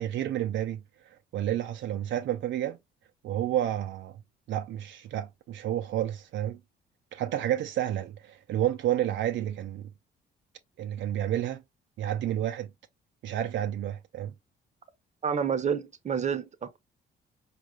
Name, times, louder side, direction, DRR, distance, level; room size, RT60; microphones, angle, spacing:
voice 1, 0.0-2.8 3.2-4.2 4.5-6.6 7.1-9.9 10.8-11.6 12.0-12.7 13.2-14.3, right 11 dB, 70° right, 0.5 m, -30 dB
voice 2, 15.2-16.8, right 7 dB, 35° right, 0.7 m, -29 dB
4.6 x 2.4 x 3.1 m
cardioid pair, 90°, 20 cm